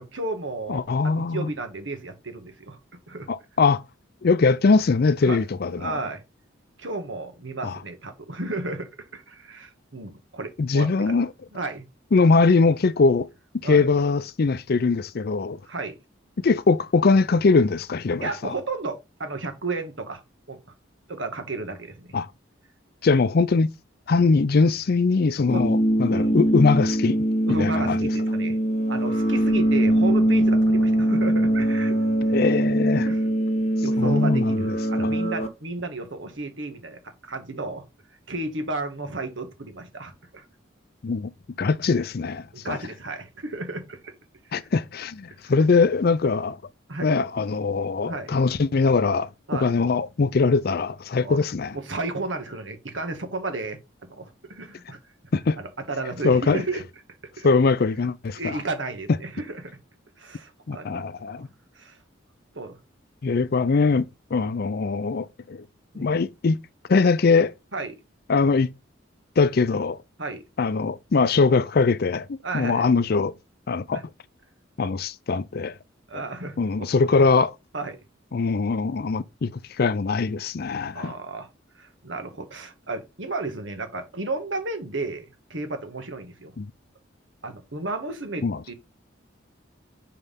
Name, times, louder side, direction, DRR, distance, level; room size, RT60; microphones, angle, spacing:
voice 1, 0.0-3.3 5.2-5.4 5.8-6.2 6.8-11.2 11.5-11.9 13.6-13.8 15.6-16.0 18.2-20.2 20.5-20.6 21.1-22.1 25.5-25.6 26.1-26.4 27.5-28.6 28.9-32.0 32.3-32.4 33.0-33.2 33.8-37.8 38.3-40.4 42.5-44.1 44.5-44.7 46.9-47.1 48.0-48.3 49.5-49.7 51.2-51.4 51.7-55.0 55.6-56.8 57.4-57.5 58.4-59.8 60.2-61.0 61.4-61.5 61.7-62.0 62.5-62.8 65.9-66.1 67.7-68.0 70.2-70.4 72.4-72.9 73.9-74.0 76.1-76.9 77.7-78.0 80.9-81.5 81.7-86.5 87.4-88.7, right 2 dB, 70° right, 1.6 m, -33 dB
voice 2, 0.7-1.5 3.3-3.8 4.2-6.0 7.6-7.8 10.6-11.3 12.1-13.3 13.6-15.6 16.4-18.5 22.1-22.3 23.0-23.7 24.1-27.2 27.6-28.0 32.3-33.1 34.0-35.1 41.0-41.3 41.6-42.8 44.5-46.6 47.0-51.8 55.3-55.6 56.2-56.6 57.4-58.6 60.7-61.5 63.2-65.6 66.0-66.6 66.9-67.5 68.3-68.7 69.4-70.0 70.6-73.3 73.7-74.0 74.8-75.7 76.6-77.5 78.3-79.5 79.8-81.1 86.6-86.7 88.4-88.6, left 4 dB, 50° left, 0.5 m, -22 dB
sound 1, 25.5-35.5, right 1 dB, 35° left, 1.0 m, -22 dB
5.5 x 4.6 x 5.6 m
head